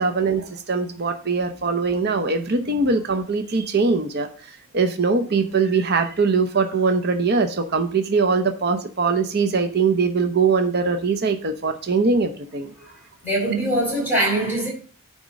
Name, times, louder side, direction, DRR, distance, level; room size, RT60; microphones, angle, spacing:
voice 1, 0.0-12.7, right 4 dB, 45° right, 0.7 m, -22 dB
voice 2, 13.2-14.7, right 1 dB, 10° right, 4.5 m, -22 dB
9.3 x 3.7 x 6.2 m
head